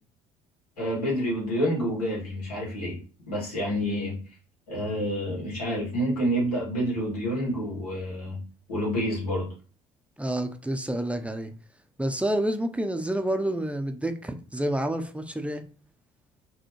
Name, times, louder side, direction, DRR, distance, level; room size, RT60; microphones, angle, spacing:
voice 1, 0.8-3.0 3.3-4.2 4.7-8.4 8.7-9.5, equal, 90° left, 2.5 m, -28 dB
voice 2, 10.2-11.5 12.0-15.6, right 1 dB, 5° right, 0.8 m, -28 dB
5.1 x 3.2 x 3.2 m
hypercardioid pair, 60°, 19 cm